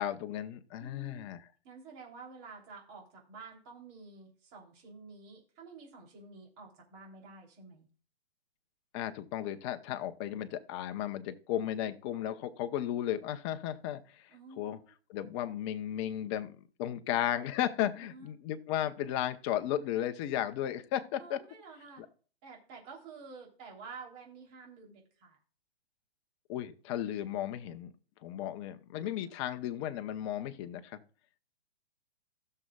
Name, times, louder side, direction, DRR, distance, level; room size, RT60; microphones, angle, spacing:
voice 1, 0.0-1.4 8.9-14.2 14.6-14.8 15.1-16.5 16.8-21.4 26.5-27.9 28.2-31.0, left 11 dB, 30° left, 9 dB, 0.8 m, -34 dB
voice 2, 0.8-1.3 1.6-7.9 14.3-14.9 18.0-18.3 21.2-22.0 22.4-25.4 29.1-29.7, right 4 dB, 30° right, 0 dB, 3.2 m, -50 dB
16.0 x 6.6 x 2.3 m, 0.39 s
hypercardioid pair, 135°, 31 cm